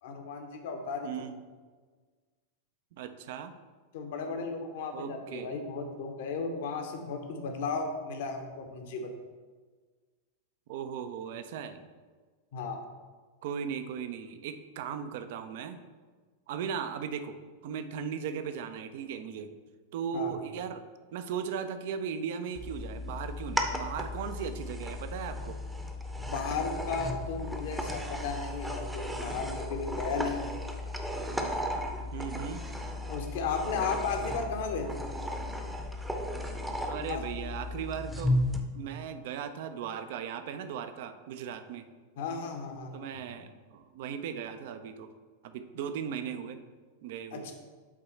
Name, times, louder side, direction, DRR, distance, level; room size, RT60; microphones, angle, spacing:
voice 1, 0.0-1.1 3.9-9.1 12.5-12.8 20.1-20.3 26.2-30.5 33.1-34.9 37.1-37.2 42.2-43.3 47.3-47.5, left 4 dB, 55° left, 4 dB, 1.0 m, -35 dB
voice 2, 1.0-1.4 2.9-3.5 4.9-5.5 10.7-11.8 13.4-15.8 16.5-17.4 17.6-19.5 19.9-20.8 21.1-25.6 32.1-32.6 36.9-38.4 38.7-41.9 42.9-45.1 45.4-46.6 47.0-47.5, right 7 dB, 50° right, 9 dB, 0.5 m, -37 dB
sound 1, 22.6-38.6, left 1 dB, 5° right, 0.8 m, -35 dB
8.4 x 3.8 x 4.3 m, 1.4 s
figure-of-eight pair, 90°, 0 cm